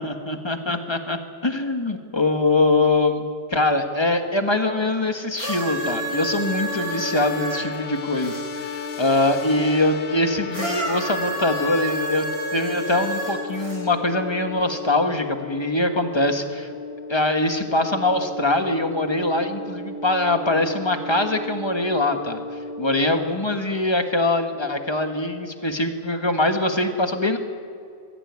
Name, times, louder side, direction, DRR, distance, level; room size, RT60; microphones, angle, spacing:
voice 1, 0.0-3.2 3.5-8.3 8.7-12.3 12.5-16.7 17.1-22.4 22.8-27.4, left 2 dB, 20° left, 6 dB, 1.5 m, -23 dB
sound 1, 5.3-8.4 10.5-13.8 14.7-14.8, right 1 dB, 75° right, 7.7 m, -30 dB
sound 2, 5.7-23.3, left 3 dB, 45° left, 1.1 m, -34 dB
22.0 x 15.0 x 9.5 m, 2.4 s
omnidirectional pair, 1.6 m